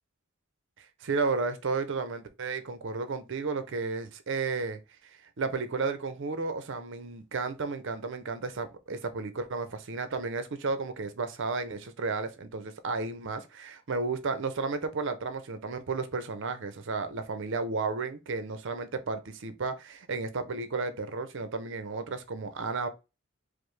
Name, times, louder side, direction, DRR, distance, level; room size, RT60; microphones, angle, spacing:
voice 1, 0.8-4.8 5.4-22.9, right 4 dB, 60° right, 0.6 m, -33 dB
4.9 x 2.0 x 3.2 m
head